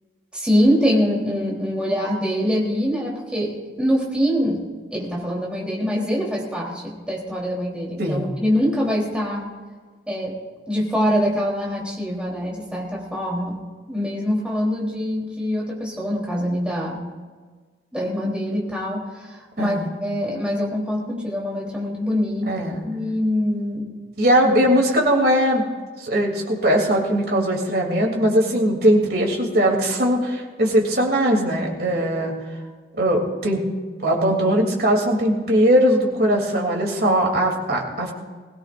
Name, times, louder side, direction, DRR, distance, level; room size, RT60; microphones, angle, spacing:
voice 1, 0.3-4.6 4.9-9.4 10.1-10.3 10.7-13.6 13.9-17.0 17.9-19.8 20.0-22.5 22.8-23.9, equal, 5° right, -3 dB, 3.6 m, -24 dB
voice 2, 8.0-8.3 19.6-19.9 22.5-22.8 24.2-25.6 26.0-32.3 33.0-33.6 34.0-38.1, equal, 60° right, -1 dB, 3.1 m, -20 dB
21.0 x 17.0 x 2.6 m, 1.5 s
head